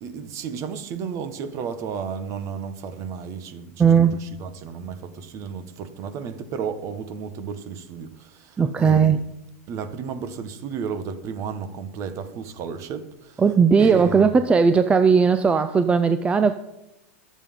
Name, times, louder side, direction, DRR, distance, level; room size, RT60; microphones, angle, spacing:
voice 1, 0.0-9.1 9.7-13.4 13.8-14.2, right 6 dB, 40° right, 1.5 m, -33 dB
voice 2, 3.8-4.2 8.6-9.2 13.4-16.5, right 6 dB, 15° right, 0.5 m, -17 dB
21.5 x 8.2 x 3.8 m
supercardioid pair, 130°, 8 cm